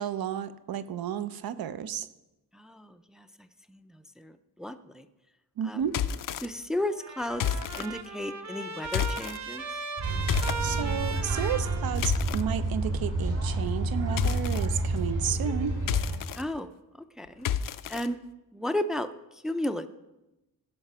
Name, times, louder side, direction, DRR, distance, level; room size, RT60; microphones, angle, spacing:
voice 1, 0.0-2.1 5.6-5.9 10.6-15.8, right 9 dB, 85° right, 13 dB, 0.7 m, -32 dB
voice 2, 2.5-5.1 5.6-5.8 6.4-7.4 7.8-9.7 16.4-16.7 17.2-17.5 17.9-18.2 18.5-19.9, left 1 dB, ahead, 9 dB, 0.3 m, -34 dB
sound 1, 5.8-6.5 7.3-7.9 8.8-9.4 10.3-10.6 11.6-12.4 14.2-14.7 15.8-16.4 17.4-18.1, left 9 dB, 65° left, 0.5 m, -30 dB
Trumpet, 6.9-12.5, right 3 dB, 50° right, 0.9 m, -38 dB
sound 2, 10.0-16.2, right 2 dB, 65° right, 3.9 m, -29 dB
16.0 x 5.9 x 5.5 m, 0.98 s
wide cardioid pair, 160°, 35 cm